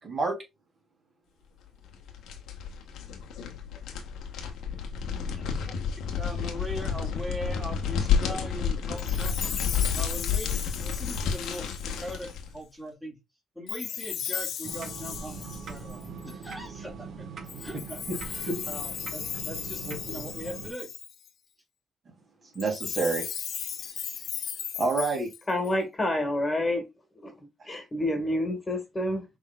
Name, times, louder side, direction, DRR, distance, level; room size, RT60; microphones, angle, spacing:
voice 1, 0.0-0.3 18.1-18.2 18.5-18.6 19.9-20.3 22.4-23.3 23.8-24.1 24.7-25.3 27.6-27.8, right 3 dB, 40° right, 3.2 m, -29 dB
sound 1, 1.8-12.5, left 7 dB, 85° left, 1.3 m, -30 dB
voice 2, 6.1-13.2 13.6-17.3 17.6-20.9, equal, 5° right, 2.2 m, -40 dB
Chime, 9.0-12.3 13.7-16.5 17.5-21.3 22.5-25.7, left 8 dB, 70° left, 0.9 m, -36 dB
sound 2, 14.6-20.7, right 5 dB, 60° right, 1.2 m, -41 dB
voice 3, 25.5-26.8 27.2-27.4 27.7-29.2, left 1 dB, 20° left, 1.8 m, -28 dB
6.1 x 3.7 x 2.4 m
cardioid pair, 90°, 0 cm